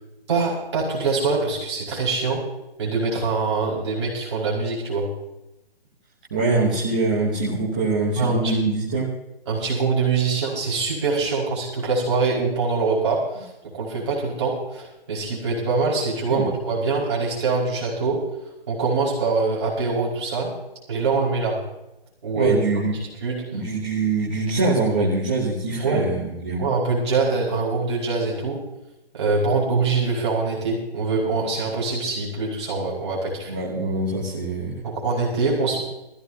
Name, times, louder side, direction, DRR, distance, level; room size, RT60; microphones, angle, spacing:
voice 1, 0.3-2.4 2.8-5.1 8.2-8.5 9.5-18.2 18.7-20.5 20.9-21.6 22.2-22.6 22.9-23.6 25.8-26.1 26.6-28.6 29.1-33.6 34.8-35.8, right 4 dB, 30° right, -5 dB, 5.3 m, -24 dB
voice 2, 6.3-9.1 16.3-16.5 22.3-22.9 23.5-26.6 33.5-34.7, right 3 dB, 10° right, -7 dB, 0.9 m, -23 dB
20.0 x 15.5 x 2.8 m, 0.93 s
hypercardioid pair, 180°, 30 cm